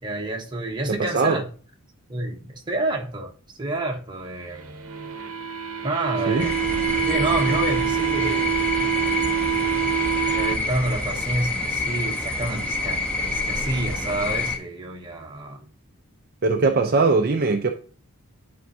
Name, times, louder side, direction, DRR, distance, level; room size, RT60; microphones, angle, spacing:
voice 1, 0.0-1.5 2.1-4.8 5.8-6.5 7.1-8.5 10.2-15.7, right 1 dB, 20° right, 1.2 m, -28 dB
voice 2, 0.9-1.4 6.3-6.5 16.4-17.7, right 3 dB, 45° right, 0.6 m, -21 dB
sound 1, 4.6-10.6, right 8 dB, 70° right, 0.9 m, -25 dB
sound 2, 6.4-14.6, left 2 dB, 5° left, 1.1 m, -27 dB
11.0 x 4.5 x 2.7 m
head